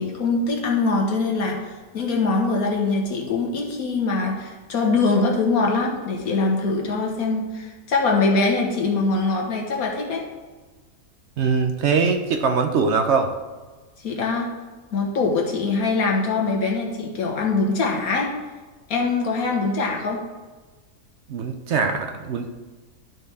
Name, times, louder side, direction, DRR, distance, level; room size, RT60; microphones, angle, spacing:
voice 1, 0.0-10.2 14.0-14.5 14.9-18.3 18.9-20.2, left 3 dB, 75° left, 0 dB, 1.7 m, -23 dB
voice 2, 11.4-13.3 21.3-22.5, right 5 dB, 60° right, 5 dB, 0.8 m, -22 dB
11.5 x 4.5 x 3.4 m, 1.3 s
omnidirectional pair, 1.5 m